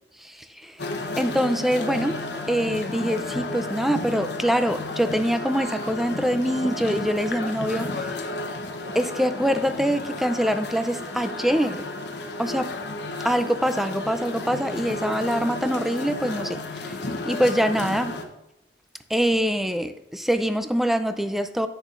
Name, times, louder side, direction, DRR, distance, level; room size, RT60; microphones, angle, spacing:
voice 1, 0.2-0.8 1.2-8.2 8.9-11.8 12.4-12.7 13.2-17.0 17.3-18.2 19.1-21.7, equal, ahead, 10 dB, 0.4 m, -24 dB
sound 1, 0.8-18.2, left 2 dB, 65° left, 0.8 m, -32 dB
10.5 x 8.1 x 2.5 m, 0.90 s
head